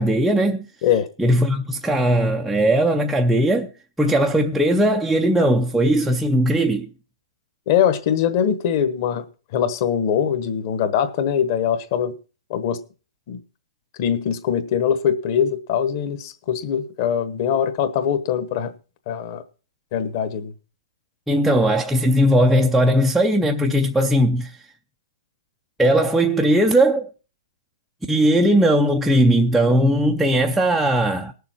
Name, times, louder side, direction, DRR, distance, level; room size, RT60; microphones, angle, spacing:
voice 1, 0.0-0.7 1.2-3.7 4.0-6.9 21.3-24.5 25.8-27.1 28.1-31.3, right 1 dB, ahead, 0.5 m, -18 dB
voice 2, 7.7-9.2 9.5-12.1 12.5-12.8 13.3-13.4 14.0-18.7 19.1-19.4 19.9-20.5, left 8 dB, 30° left, 1.2 m, -22 dB
19.0 x 6.9 x 4.4 m
hypercardioid pair, 170°, 3 cm